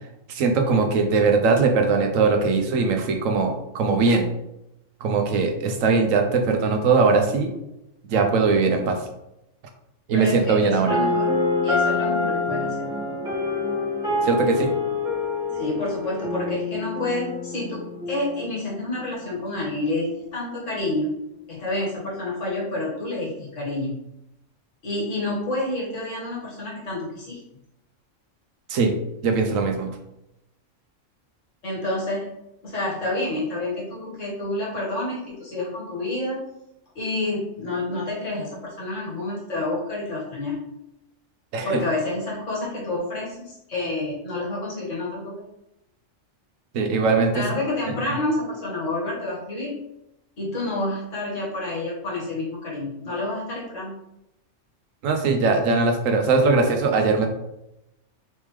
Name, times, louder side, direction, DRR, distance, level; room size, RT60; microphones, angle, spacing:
voice 1, 0.3-4.3 5.0-7.5 8.1-9.0 10.1-11.0 14.2-14.7 28.7-28.9 29.2-29.9 41.5-41.8 46.7-47.4 55.0-57.3, right 4 dB, 85° right, 5 dB, 1.1 m, -20 dB
voice 2, 10.1-11.3 11.6-12.9 15.5-21.2 21.5-24.1 24.8-27.4 31.6-32.3 32.6-36.4 37.0-40.7 41.6-45.4 47.3-49.8 50.4-53.9, left 2 dB, 70° left, -5 dB, 1.9 m, -29 dB
sound 1, 10.9-18.9, left 3 dB, 5° right, 1.3 m, -26 dB
4.1 x 3.5 x 3.2 m, 0.87 s
omnidirectional pair, 1.3 m